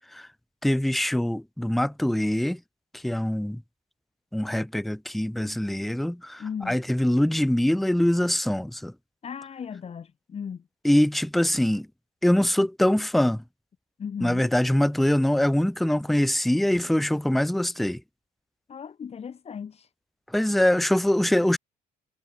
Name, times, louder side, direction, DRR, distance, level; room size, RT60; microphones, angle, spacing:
voice 1, 0.6-2.6 2.9-3.6 4.3-8.9 10.8-11.9 12.2-13.4 14.2-18.0 20.3-21.6, left 1 dB, ahead, 0.3 m, -23 dB
voice 2, 6.4-6.8 9.2-10.6 14.0-14.5 18.7-19.9, left 7 dB, 35° left, 2.7 m, -36 dB
cardioid pair, 110°, 17 cm